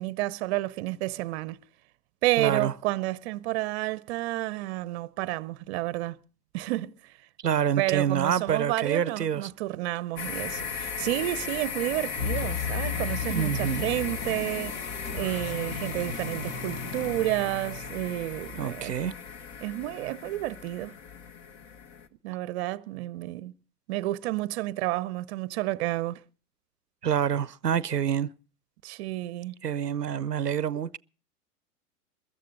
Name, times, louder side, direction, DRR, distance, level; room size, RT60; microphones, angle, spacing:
voice 1, 0.0-1.6 2.2-6.2 6.5-7.2 7.8-14.8 15.1-19.0 19.6-20.9 22.2-23.5 23.9-26.2 28.8-29.5, right 17 dB, 45° right, 0.8 m, -30 dB
voice 2, 2.4-2.7 7.4-9.5 13.3-13.9 18.6-19.1 27.0-28.3 29.6-31.0, right 9 dB, 90° right, 0.7 m, -27 dB
sound 1, 10.2-22.1, left 6 dB, 35° left, 1.6 m, -37 dB
sound 2, 12.2-18.3, left 6 dB, 60° left, 6.7 m, -35 dB
22.0 x 13.5 x 4.0 m
figure-of-eight pair, 100°, 47 cm